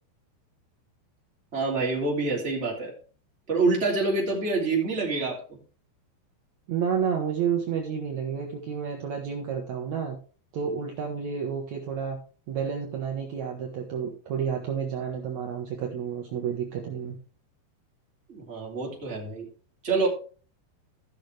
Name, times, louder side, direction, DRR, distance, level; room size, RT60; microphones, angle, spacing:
voice 1, 1.5-2.9 3.5-5.4 18.3-19.5 19.8-20.1, right 3 dB, 20° right, -3 dB, 2.6 m, -26 dB
voice 2, 6.7-10.2 10.5-12.2 12.5-17.1, right 7 dB, 70° right, 0 dB, 1.7 m, -30 dB
16.0 x 6.4 x 3.3 m, 0.39 s
omnidirectional pair, 5.2 m